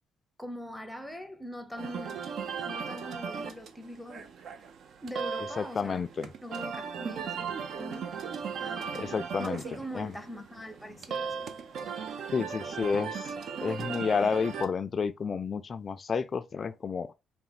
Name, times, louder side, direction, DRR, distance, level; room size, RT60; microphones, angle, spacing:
voice 1, 0.4-2.3 2.6-4.4 5.0-6.1 6.4-8.1 8.6-11.5, equal, ahead, 0.6 m, -42 dB
sound 1, 1.8-14.7, right 6 dB, 65° right, 0.6 m, -37 dB
voice 2, 5.6-6.3 9.0-9.6 9.9-10.1 12.3-13.3 13.6-17.1, left 5 dB, 40° left, 0.4 m, -30 dB
4.2 x 2.1 x 3.8 m
cardioid pair, 90°, 0 cm